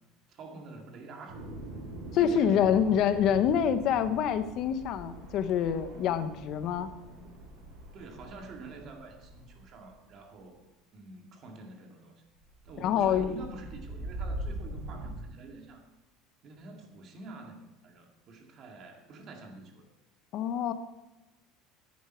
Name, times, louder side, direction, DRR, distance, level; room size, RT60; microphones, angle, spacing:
voice 1, 0.3-1.4 2.1-3.0 7.9-10.6 10.9-12.2 12.6-15.8 16.4-19.9, right 3 dB, 35° right, 2 dB, 2.1 m, -47 dB
sound 1, 1.3-10.1 12.3-15.1, right 2 dB, 60° right, 5.3 m, -43 dB
voice 2, 2.1-6.9 12.8-13.3 20.3-20.7, left 8 dB, 40° left, 11 dB, 0.9 m, -26 dB
14.0 x 10.5 x 4.5 m, 1.0 s
cardioid pair, 175°, 0 cm